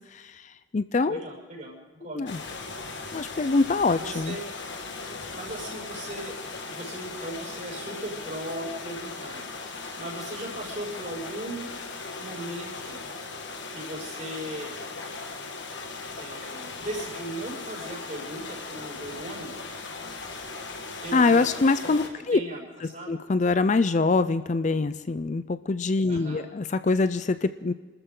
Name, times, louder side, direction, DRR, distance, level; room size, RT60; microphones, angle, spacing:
voice 1, 0.1-1.2 2.1-2.4 3.1-4.4 21.1-22.4 22.8-27.7, left 3 dB, 35° left, 12 dB, 0.4 m, -24 dB
voice 2, 1.1-1.7 2.0-2.2 3.9-4.4 5.3-6.3 6.6-9.4 10.0-11.7 12.2-13.0 13.7-14.7 16.2-19.5 21.0-21.9 22.3-22.6 22.9-23.2 26.1-26.5, right 1 dB, 40° right, -1 dB, 6.0 m, -37 dB
sound 1, 2.3-22.1, left 3 dB, 60° left, 1.8 m, -38 dB
27.5 x 13.5 x 3.8 m, 1.3 s
head